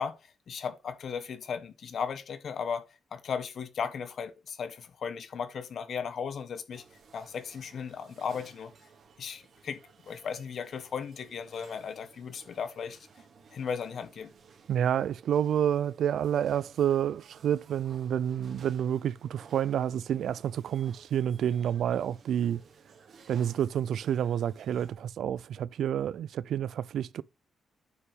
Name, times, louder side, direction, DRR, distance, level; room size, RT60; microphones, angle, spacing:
voice 1, 0.0-2.8 3.1-6.8 7.1-8.7 9.2-13.0 13.5-14.3, left 6 dB, 55° left, 1.4 m, -36 dB
sound 1, 6.7-24.9, right 5 dB, 55° right, 2.4 m, -57 dB
voice 2, 14.7-22.6 23.3-27.2, right 9 dB, 75° right, 0.4 m, -29 dB
9.5 x 5.6 x 3.6 m
cardioid pair, 125°, 0 cm